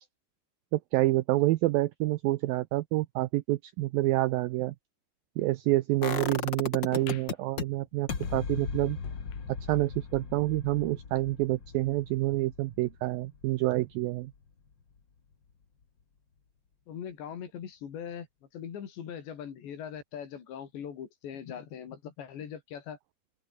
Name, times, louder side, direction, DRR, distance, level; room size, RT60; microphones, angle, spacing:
voice 1, 0.7-4.8 5.4-9.0 9.7-14.3, right 17 dB, 85° right, 2.0 m, -28 dB
sound 1, 6.0-7.6 8.1-13.9 14.2-14.3, left 5 dB, 35° left, 2.3 m, -36 dB
sound 2, 6.9-9.9 10.3-10.4 10.6-10.7 11.5-11.6, left 12 dB, 65° left, 3.1 m, -51 dB
voice 2, 16.9-18.3 18.5-23.0, left 8 dB, 80° left, 5.6 m, -41 dB
open air
omnidirectional pair, 5.0 m